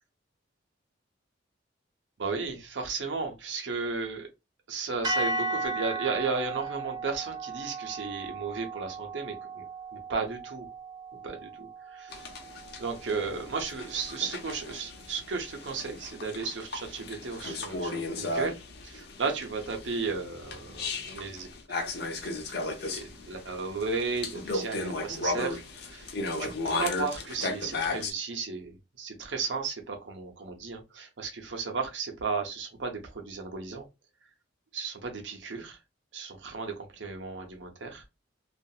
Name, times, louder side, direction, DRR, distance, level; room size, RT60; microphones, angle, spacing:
voice 1, 2.2-4.3 4.7-9.6 9.9-10.7 11.2-12.2 12.8-18.6 18.8-21.5 22.0-22.1 22.4-22.5 22.8-25.6 25.9-33.9 34.7-35.8 36.1-38.1, right 4 dB, 75° right, 0.7 m, -34 dB
sound 1, 5.0-13.3, right 3 dB, 20° right, 0.4 m, -36 dB
sound 2, 12.1-28.1, left 2 dB, 60° left, 0.6 m, -35 dB
2.7 x 2.4 x 2.3 m
head